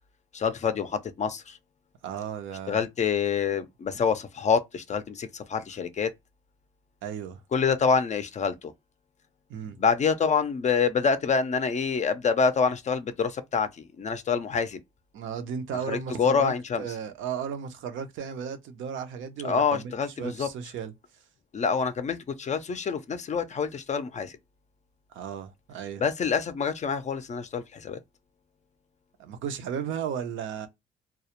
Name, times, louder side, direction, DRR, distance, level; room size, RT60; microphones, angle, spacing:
voice 1, 0.3-1.6 2.7-6.1 7.5-8.7 9.8-14.8 15.9-16.8 19.4-20.5 21.5-24.4 26.0-28.0, left 6 dB, 35° left, 0.4 m, -26 dB
voice 2, 2.0-2.8 7.0-7.4 9.5-9.8 15.1-19.9 20.2-21.2 25.1-26.0 29.2-30.7, right 7 dB, 80° right, 0.5 m, -35 dB
2.2 x 2.0 x 2.8 m
cardioid pair, 90°, 20 cm